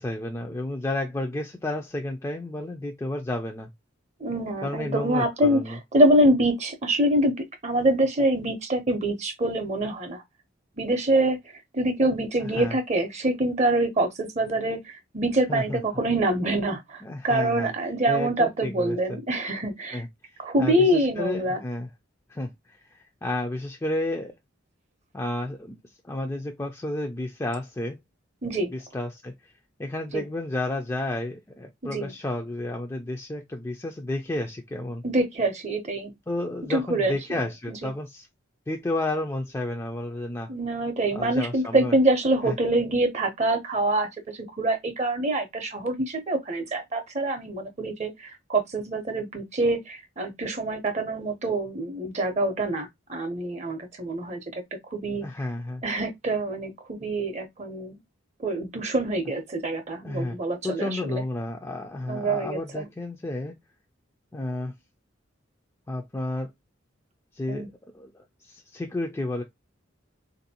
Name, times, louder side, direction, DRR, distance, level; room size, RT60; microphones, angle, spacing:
voice 1, 0.0-3.7 4.6-5.8 12.4-12.8 15.5-15.8 17.0-17.7 18.1-19.2 19.9-21.9 22.3-24.3 25.1-25.8 26.0-28.0 28.7-29.5 29.8-35.0 36.3-38.3 38.7-40.5 41.1-41.9 42.4-42.5 55.2-55.8 60.0-60.3 60.6-63.6 64.3-64.7 65.9-66.5 67.3-69.4, left 1 dB, 15° left, 0.3 m, -31 dB
voice 2, 4.2-7.3 7.6-10.2 10.8-11.4 11.7-20.0 20.4-21.6 28.4-28.7 30.1-30.2 31.8-32.1 35.0-36.1 36.7-37.4 37.7-37.9 40.5-54.6 54.9-55.3 55.8-58.0 58.4-61.2 62.1-62.9 67.5-67.7, right 1 dB, 35° right, 0.6 m, -25 dB
3.6 x 2.6 x 2.7 m
head